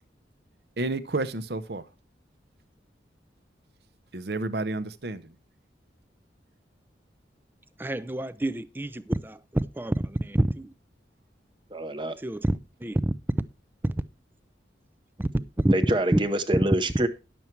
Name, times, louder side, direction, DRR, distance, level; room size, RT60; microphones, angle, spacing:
voice 1, 0.8-1.9 4.1-5.3, right 2 dB, 65° right, 0.8 m, -30 dB
voice 2, 7.8-10.7 12.2-13.1 13.8-13.9 15.2-15.3 15.6-15.7 16.1-16.2, right 1 dB, 10° right, 0.4 m, -27 dB
voice 3, 11.7-12.1 15.7-17.1, right 1 dB, 25° right, 0.8 m, -26 dB
11.0 x 7.1 x 4.5 m
head